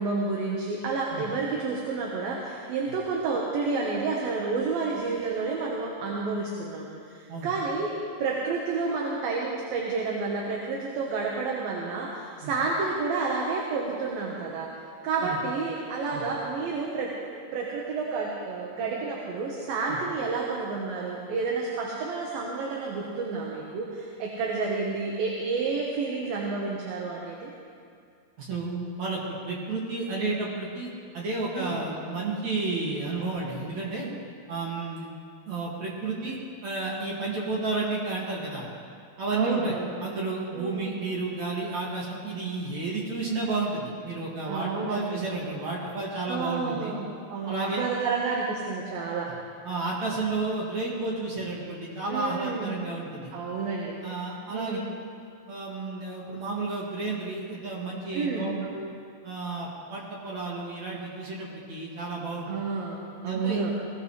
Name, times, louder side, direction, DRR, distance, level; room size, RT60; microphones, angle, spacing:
voice 1, 0.0-14.7 15.0-27.5 31.5-31.8 39.3-39.9 40.5-41.0 44.5-45.2 46.3-49.3 52.1-52.7 53.3-54.0 54.5-54.8 58.1-58.7 62.5-63.7, right 4 dB, 65° right, -2 dB, 2.8 m, -30 dB
voice 2, 28.4-30.9 31.1-34.1 34.5-35.1 35.5-36.4 36.6-38.6 39.2-39.7 40.0-46.9 47.4-47.9 49.6-53.3 54.0-54.8 55.5-58.9 59.2-62.5 63.2-63.6, right 3 dB, 50° right, -4 dB, 3.0 m, -31 dB
20.0 x 19.0 x 3.3 m, 2.3 s
omnidirectional pair, 5.0 m